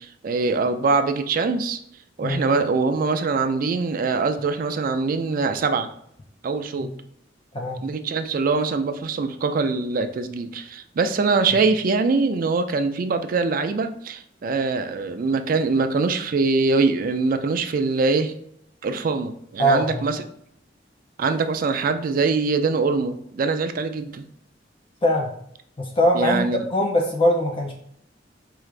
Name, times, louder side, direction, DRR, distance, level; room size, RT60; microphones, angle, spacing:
voice 1, 0.0-1.8 2.2-5.9 6.4-6.9 7.8-18.3 18.8-20.2 21.2-24.2 26.1-26.7, right 4 dB, 50° right, 8 dB, 0.4 m, -23 dB
voice 2, 19.6-20.1 25.0-25.3 25.8-27.7, equal, 30° left, 0 dB, 0.4 m, -21 dB
4.6 x 2.4 x 3.2 m, 0.70 s
head